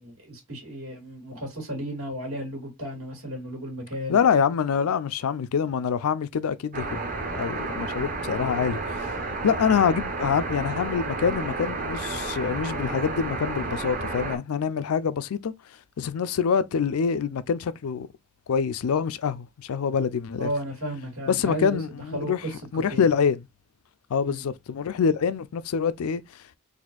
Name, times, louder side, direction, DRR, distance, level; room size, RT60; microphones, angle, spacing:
voice 1, 0.0-4.2 20.4-23.0 24.2-24.4, equal, 75° right, 2.1 m, -34 dB
voice 2, 4.1-7.0 7.3-9.1 9.4-15.5 16.0-18.1 18.5-20.5 21.3-22.4 22.7-23.4 24.1-26.6, left 6 dB, 80° left, 0.4 m, -25 dB
sound 1, 6.7-14.4, right 3 dB, 40° right, 0.7 m, -31 dB
4.1 x 2.5 x 2.3 m
head